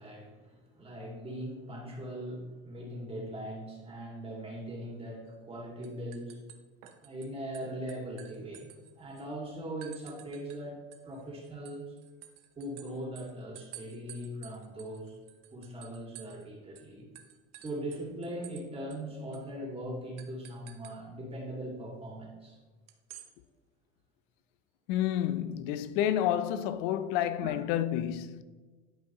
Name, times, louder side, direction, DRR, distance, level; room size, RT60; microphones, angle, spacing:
voice 1, 0.0-6.4 7.0-8.7 9.0-11.9 12.6-15.2 15.5-17.1 17.6-22.6 27.4-27.5, right 1 dB, 20° right, 2.3 m, -40 dB
sound 1, 5.3-5.5 5.8-7.3 7.5-9.3 9.8-10.6 10.9-16.5 16.8-16.9 17.2-18.6 18.9-19.0 19.3-19.5 20.2-21.0 22.9-23.3, right 13 dB, 85° right, 1.0 m, -51 dB
voice 2, 24.9-28.4, left 11 dB, 75° left, 0.6 m, -30 dB
12.0 x 5.0 x 3.0 m
cardioid pair, 125°, 29 cm